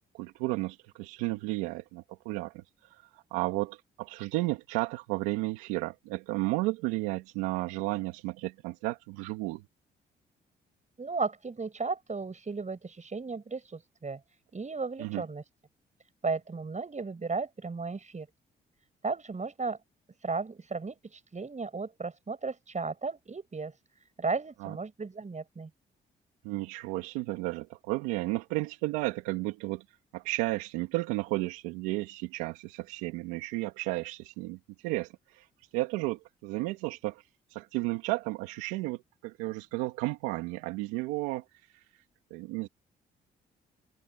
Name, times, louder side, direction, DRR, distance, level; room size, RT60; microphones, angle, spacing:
voice 1, 0.1-9.6 15.0-15.2 24.6-24.8 26.4-29.8 30.1-35.5 35.7-37.2 37.5-41.4 41.7-41.8 42.3-42.7, right 20 dB, 90° right, 2.1 m, -33 dB
voice 2, 11.0-14.2 14.5-15.4 16.2-18.3 19.0-19.8 20.2-23.7 24.2-25.7, right 4 dB, 35° right, 7.2 m, -35 dB
hypercardioid pair, 50°, 21 cm